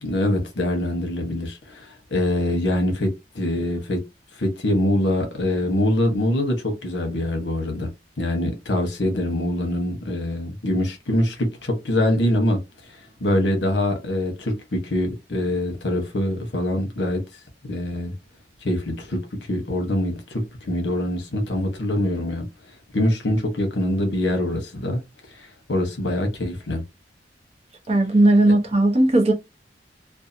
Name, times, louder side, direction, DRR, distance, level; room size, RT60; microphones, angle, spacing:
voice 1, 0.0-4.0 4.3-7.9 8.2-12.6 12.9-17.2 17.6-18.1 18.6-22.4 22.9-25.0 25.3-26.8, left 1 dB, 70° left, 0.9 m, -24 dB
voice 2, 27.9-29.3, right 1 dB, 35° right, 0.8 m, -17 dB
2.6 x 2.3 x 2.6 m
head